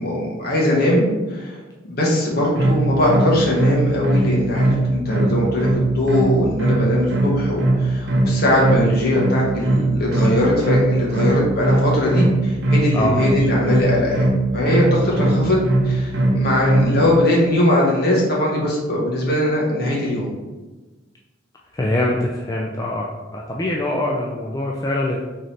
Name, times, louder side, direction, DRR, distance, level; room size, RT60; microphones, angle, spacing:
voice 1, 0.0-1.6 1.9-14.3 14.5-20.3, left 1 dB, 50° left, -4 dB, 1.3 m, -20 dB
sound 1, 2.6-17.0, right 2 dB, 65° right, 0.7 m, -19 dB
voice 2, 21.7-23.1 23.3-25.2, left 1 dB, 20° left, -2 dB, 0.3 m, -23 dB
3.9 x 3.2 x 4.1 m, 1.2 s
head